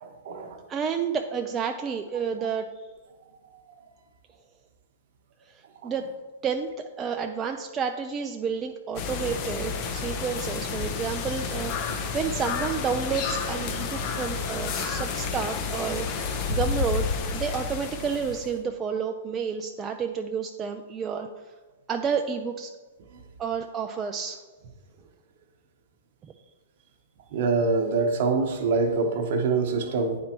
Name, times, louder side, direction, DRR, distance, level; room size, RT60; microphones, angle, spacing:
voice 1, 0.0-0.6 5.8-5.9 27.3-30.2, right 4 dB, 55° right, 5 dB, 0.9 m, -25 dB
voice 2, 0.7-2.7 5.5-6.1 6.4-17.1 17.3-21.3 21.9-22.7 23.4-24.4 26.2-26.3, right 6 dB, 25° right, 5 dB, 0.3 m, -30 dB
sound 1, 9.0-18.6, left 5 dB, 40° left, 0.8 m, -30 dB
9.2 x 4.4 x 3.0 m, 1.3 s
hypercardioid pair, 115°, 0 cm